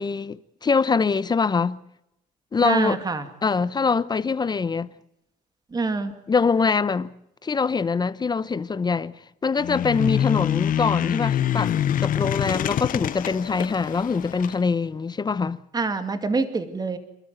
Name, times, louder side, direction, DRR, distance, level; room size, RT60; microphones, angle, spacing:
voice 1, 0.0-1.8 2.5-3.0 3.4-4.9 6.3-7.1 7.4-9.1 9.4-11.7 12.0-15.6, left 5 dB, 25° left, 0.7 m, -23 dB
voice 2, 2.6-3.3 5.7-6.1 15.7-17.0, right 4 dB, 25° right, 2.3 m, -25 dB
sound 1, 9.6-14.6, left 10 dB, 55° left, 0.9 m, -25 dB
28.5 x 13.0 x 9.4 m
cardioid pair, 110°, 17 cm